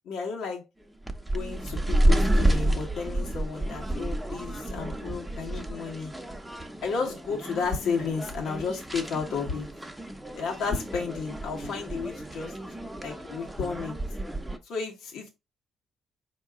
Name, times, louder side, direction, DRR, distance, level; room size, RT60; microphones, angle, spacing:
voice 1, 0.0-0.6 1.3-6.1 6.8-9.7 10.3-12.5 13.0-14.0 14.6-15.3, left 5 dB, 85° left, 1.4 m, -32 dB
sound 1, 1.0-14.6, right 1 dB, 5° right, 0.7 m, -30 dB
4.6 x 2.9 x 3.6 m
cardioid pair, 90°, 0 cm